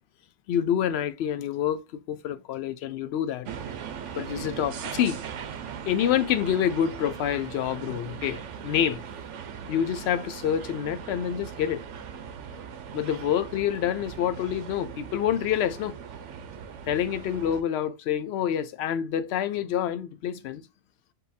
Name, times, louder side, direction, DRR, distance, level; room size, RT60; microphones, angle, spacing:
voice 1, 0.5-1.8 2.1-3.5 4.2-5.2 5.8-9.0 9.7-11.8 12.9-16.0 16.9-20.6, left 9 dB, 70° left, 0.8 m, -27 dB
sound 1, 3.5-17.6, right 7 dB, 85° right, 1.0 m, -39 dB
5.3 x 2.3 x 4.1 m
omnidirectional pair, 1.2 m